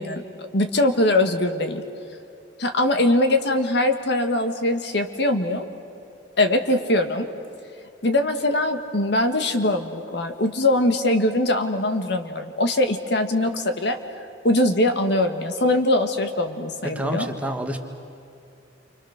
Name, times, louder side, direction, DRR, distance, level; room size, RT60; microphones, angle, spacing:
voice 1, 0.0-1.8 2.6-5.7 6.4-7.3 8.0-14.0 14.4-17.3, left 1 dB, 65° left, 6 dB, 1.8 m, -22 dB
voice 2, 16.8-17.8, right 1 dB, 10° right, 4 dB, 1.6 m, -28 dB
29.5 x 25.5 x 6.7 m, 2.7 s
head